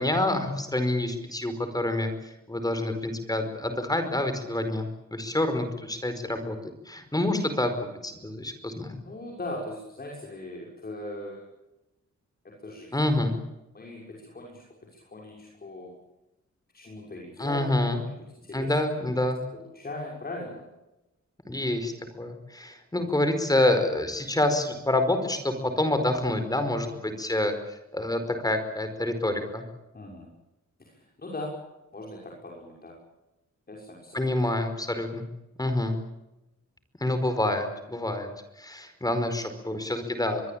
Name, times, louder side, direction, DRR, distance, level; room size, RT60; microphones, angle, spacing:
voice 1, 0.0-2.1 2.5-6.6 6.8-7.7 8.0-9.0 12.9-13.3 17.4-18.0 18.5-19.4 21.5-21.9 22.2-27.5 27.9-29.6 34.1-35.3 35.6-36.0 37.0-38.3 38.6-40.4, left 1 dB, 10° left, 8 dB, 4.9 m, -27 dB
voice 2, 9.1-11.4 12.4-13.0 13.7-15.9 16.7-17.7 18.0-18.7 19.0-19.2 19.5-20.6 23.0-23.1 29.9-30.3 30.8-31.5 31.9-33.0 33.7-34.4, left 1 dB, 30° left, -2 dB, 6.2 m, -40 dB
23.5 x 23.0 x 8.9 m, 0.95 s
wide cardioid pair, 160°, 29 cm